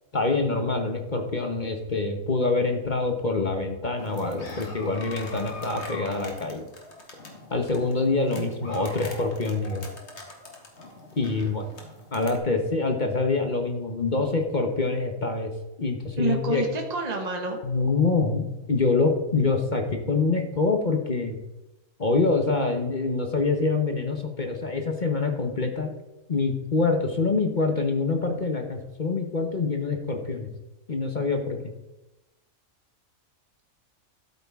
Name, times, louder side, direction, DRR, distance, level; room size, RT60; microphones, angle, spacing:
voice 1, 0.1-6.7 7.5-9.9 11.2-11.7 12.1-15.5 15.8-16.6 17.6-21.4 22.0-25.9 26.3-30.5 30.9-31.6, left 3 dB, 35° left, 4 dB, 1.1 m, -25 dB
sound 1, 4.0-12.4, left 2 dB, 50° left, 2.0 m, -42 dB
voice 2, 16.2-17.6, right 2 dB, 30° right, 2 dB, 1.4 m, -28 dB
12.5 x 8.4 x 3.6 m, 0.99 s
omnidirectional pair, 1.5 m